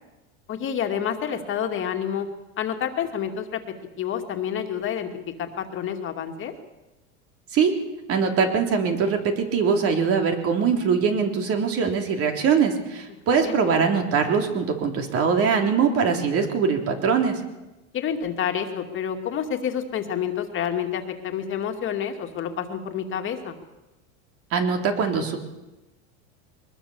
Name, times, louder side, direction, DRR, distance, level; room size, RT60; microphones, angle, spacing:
voice 1, 0.5-2.3 2.6-3.6 4.0-5.1 5.4-6.5 13.4-13.6 17.9-23.6, left 8 dB, 35° left, 5 dB, 2.4 m, -28 dB
voice 2, 8.1-17.4 24.5-25.4, right 6 dB, 40° right, 4 dB, 3.4 m, -22 dB
23.0 x 20.0 x 7.2 m, 1.0 s
supercardioid pair, 135°, 34 cm